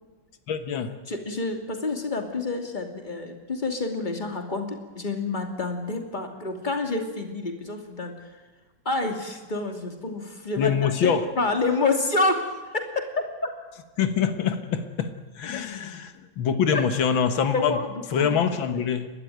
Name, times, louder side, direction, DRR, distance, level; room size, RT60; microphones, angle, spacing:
voice 1, 0.5-1.0 10.6-11.3 14.0-17.8 18.1-19.1, left 7 dB, 85° left, 8 dB, 2.0 m, -25 dB
voice 2, 1.1-8.3 8.8-13.0 13.4-13.5 16.7-16.8 17.5-18.4 18.7-18.8, left 3 dB, 25° left, 4 dB, 2.8 m, -28 dB
30.0 x 12.5 x 9.3 m, 1.3 s
omnidirectional pair, 2.1 m